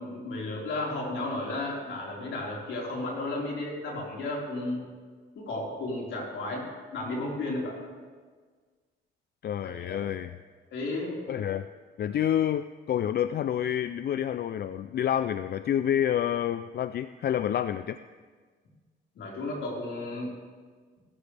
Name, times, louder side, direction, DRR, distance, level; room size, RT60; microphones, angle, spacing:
voice 1, 0.0-4.9 5.3-7.8 9.6-10.0 10.7-11.2 19.2-20.3, left 2 dB, 75° left, -3 dB, 4.5 m, -33 dB
voice 2, 9.4-10.3 11.3-11.7 12.0-18.0, left 10 dB, 55° left, 12 dB, 0.4 m, -28 dB
23.0 x 13.5 x 3.4 m, 1.5 s
cardioid pair, 90°, 20 cm